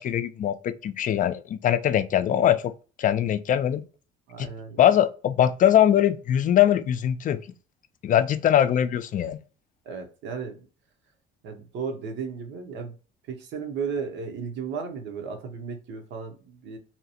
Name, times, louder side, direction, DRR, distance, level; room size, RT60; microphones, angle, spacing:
voice 1, 0.0-2.7 3.0-3.8 4.4-4.5 4.8-7.4 8.0-9.4, left 10 dB, 40° left, 0.4 m, -22 dB
voice 2, 4.3-4.8 9.8-10.6 11.4-12.9 13.3-16.8, right 5 dB, 65° right, 0.9 m, -34 dB
2.9 x 2.3 x 2.8 m
supercardioid pair, 75°, 21 cm